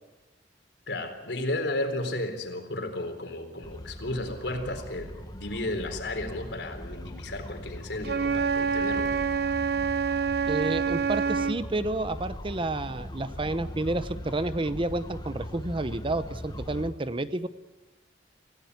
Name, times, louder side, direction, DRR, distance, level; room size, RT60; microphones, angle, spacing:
voice 1, 0.9-9.1, left 1 dB, 75° left, 6 dB, 3.9 m, -33 dB
sound 1, 3.6-16.9, equal, 25° left, 1.5 m, -40 dB
Wind instrument woodwind instrument, 8.0-11.6, right 6 dB, 60° right, 0.8 m, -27 dB
voice 2, 10.5-17.5, right 2 dB, 30° right, 13 dB, 0.8 m, -30 dB
26.5 x 17.0 x 9.6 m, 1.2 s
head